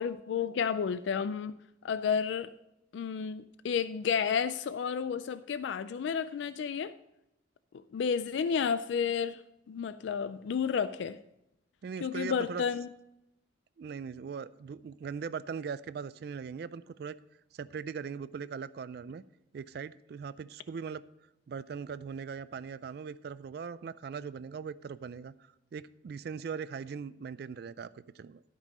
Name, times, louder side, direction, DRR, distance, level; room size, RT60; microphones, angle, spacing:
voice 1, 0.0-1.5 1.8-2.5 2.9-6.9 7.9-9.4 9.7-11.2 12.0-12.9, left 6 dB, 75° left, 14 dB, 0.3 m, -31 dB
voice 2, 11.8-12.6 13.8-17.2 17.5-19.2 19.5-21.0 21.5-25.3 25.7-28.4, right 6 dB, 55° right, 16 dB, 0.3 m, -40 dB
12.5 x 5.4 x 5.2 m, 0.86 s
head